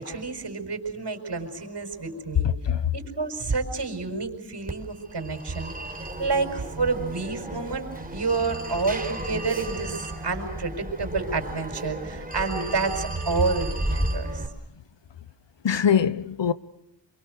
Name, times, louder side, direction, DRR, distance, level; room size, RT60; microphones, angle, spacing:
voice 1, 0.0-2.5 2.9-5.7 6.2-7.9 8.1-14.4, right 4 dB, 65° right, 5.1 m, -29 dB
voice 2, 2.4-2.9 15.6-16.5, left 8 dB, 80° left, 1.1 m, -23 dB
Telephone, 4.7-14.5, right 1 dB, 20° right, 4.3 m, -33 dB
28.0 x 23.0 x 6.5 m
wide cardioid pair, 95°, 43 cm